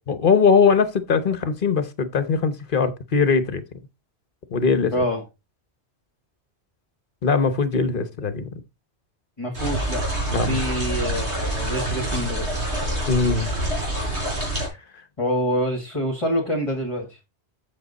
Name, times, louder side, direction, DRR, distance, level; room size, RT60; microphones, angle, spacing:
voice 1, 0.1-3.6 4.5-5.0 7.2-8.5 10.3-10.6 13.1-13.5, left 5 dB, 50° left, 1.1 m, -20 dB
voice 2, 4.9-5.2 9.4-10.0 10.5-12.6 15.2-17.1, equal, 30° left, 1.9 m, -26 dB
sound 1, 9.5-14.7, right 1 dB, 70° right, 4.6 m, -26 dB
7.7 x 7.0 x 4.0 m
omnidirectional pair, 1.2 m